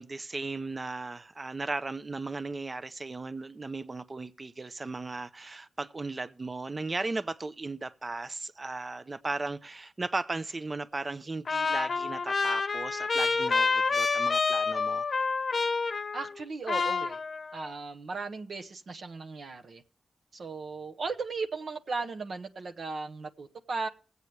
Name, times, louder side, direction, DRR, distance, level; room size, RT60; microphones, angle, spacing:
voice 1, 0.0-15.0, right 3 dB, 45° right, 0.6 m, -36 dB
Trumpet, 11.5-16.4 16.7-17.7, left 4 dB, 65° left, 0.7 m, -28 dB
voice 2, 16.1-17.2 17.5-19.8 20.3-23.9, right 4 dB, 80° right, 0.9 m, -36 dB
19.5 x 8.2 x 3.2 m
cardioid pair, 40°, 0 cm